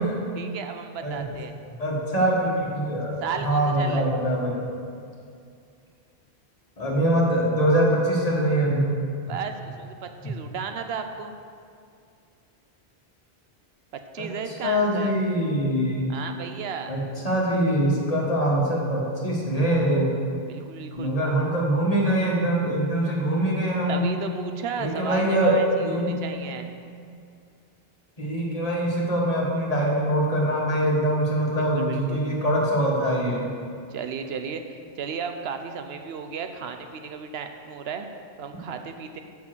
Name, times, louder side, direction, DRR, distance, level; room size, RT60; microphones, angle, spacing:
voice 1, 0.4-1.5 3.2-4.1 9.3-11.3 14.1-15.2 16.1-16.9 20.5-21.1 23.9-26.8 31.5-32.2 33.9-38.1 38.4-39.2, right 6 dB, 75° right, 6 dB, 0.8 m, -34 dB
voice 2, 1.8-4.7 6.8-8.9 14.2-14.3 14.6-16.1 16.9-20.1 21.0-24.1 24.8-25.5 25.8-26.1 28.2-33.5, right 1 dB, 35° left, -4 dB, 1.6 m, -23 dB
7.2 x 6.0 x 6.0 m, 2.3 s
omnidirectional pair, 1.1 m